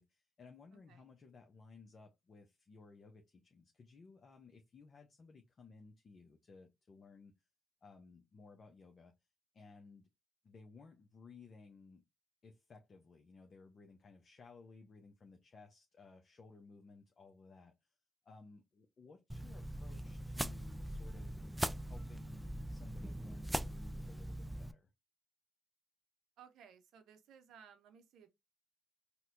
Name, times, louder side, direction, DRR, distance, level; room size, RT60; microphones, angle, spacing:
voice 1, 0.0-7.3 7.8-9.1 9.5-10.1 10.4-12.0 12.4-17.9 18.2-21.4 21.8-24.9, left 4 dB, 50° left, 0.7 m, -58 dB
sound 1, 19.3-24.7, right 1 dB, 10° right, 0.3 m, -41 dB
voice 2, 26.4-28.3, right 7 dB, 75° right, 0.7 m, -59 dB
4.2 x 2.2 x 2.5 m
supercardioid pair, 55°, 0 cm